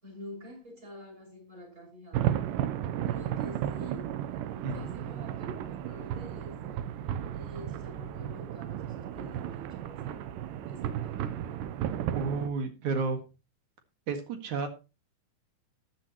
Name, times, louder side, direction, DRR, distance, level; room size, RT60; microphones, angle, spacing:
voice 1, 0.0-2.4 3.0-4.2 4.7-6.6 7.3-10.3 10.7-11.3, left 1 dB, 20° right, 6.6 m, -48 dB
sound 1, 2.1-12.5, right 11 dB, 90° right, 2.4 m, -34 dB
voice 2, 4.6-4.9 12.1-13.2 14.1-14.7, right 4 dB, 65° right, 3.1 m, -31 dB
14.0 x 10.5 x 3.0 m
omnidirectional pair, 3.7 m